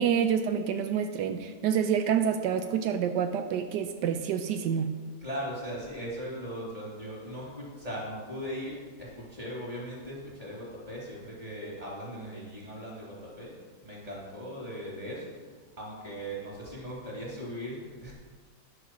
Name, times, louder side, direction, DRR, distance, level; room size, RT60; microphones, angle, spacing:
voice 1, 0.0-4.9, right 8 dB, 85° right, 7 dB, 1.3 m, -27 dB
voice 2, 5.2-18.1, equal, 20° right, -5 dB, 3.5 m, -39 dB
10.5 x 6.4 x 6.3 m, 1.5 s
omnidirectional pair, 1.8 m